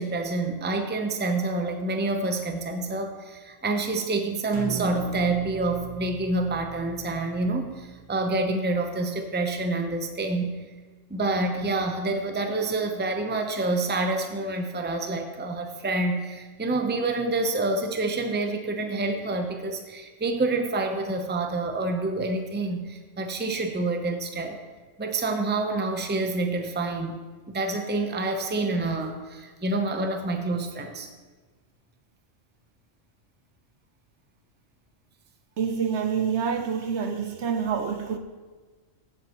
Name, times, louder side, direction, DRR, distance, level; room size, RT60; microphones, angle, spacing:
voice 1, 0.0-10.6 11.1-24.6 25.0-27.2 27.5-31.1, right 2 dB, 10° right, 0.6 m, -27 dB
sound 1, 4.5-8.7, right 3 dB, 50° right, 1.7 m, -37 dB
voice 2, 35.6-38.2, right 6 dB, 65° right, 0.9 m, -27 dB
15.0 x 7.8 x 3.1 m
omnidirectional pair, 1.3 m